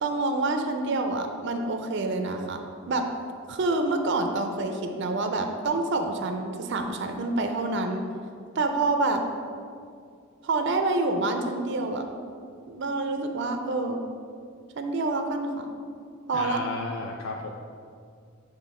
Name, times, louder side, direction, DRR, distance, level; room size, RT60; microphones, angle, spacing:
voice 1, 0.0-2.6 2.9-3.1 3.5-8.0 8.6-9.2 10.4-12.0 12.7-14.0 14.8-15.7 16.3-16.6, right 2 dB, 55° right, 5 dB, 0.4 m, -27 dB
voice 2, 16.3-17.6, left 3 dB, 70° left, 1 dB, 0.4 m, -34 dB
7.4 x 3.2 x 4.2 m, 2.3 s
head